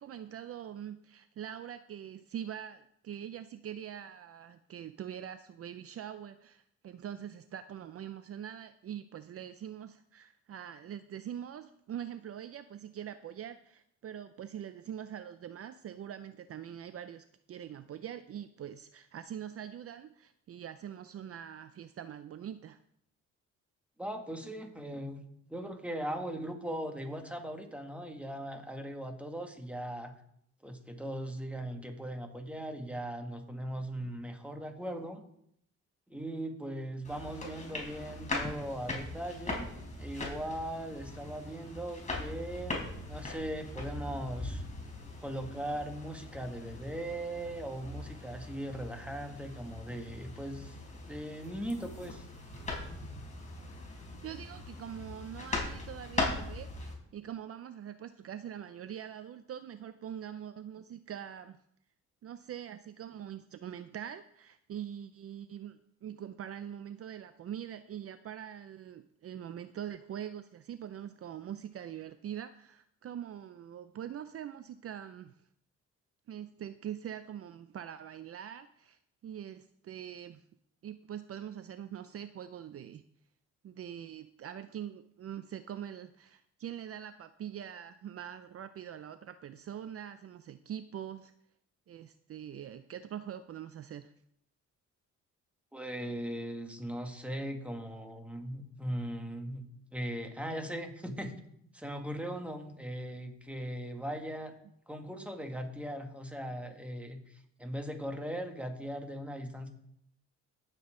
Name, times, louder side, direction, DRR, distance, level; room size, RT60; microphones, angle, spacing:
voice 1, 0.0-22.8 54.2-61.6 62.2-75.3 76.3-80.4 80.8-83.0 83.6-91.3 91.9-94.1, right 9 dB, 50° right, 12 dB, 0.5 m, -43 dB
voice 2, 24.0-25.2 25.5-30.1 30.6-35.2 36.1-39.7 40.0-44.6 45.2-50.8 51.1-52.3 95.7-101.3 101.7-104.5 104.9-109.7, right 1 dB, 5° right, 4 dB, 2.0 m, -39 dB
sound 1, 37.0-56.9, left 2 dB, 25° left, 3.8 m, -40 dB
18.0 x 7.6 x 3.8 m, 0.71 s
cardioid pair, 90°, 30 cm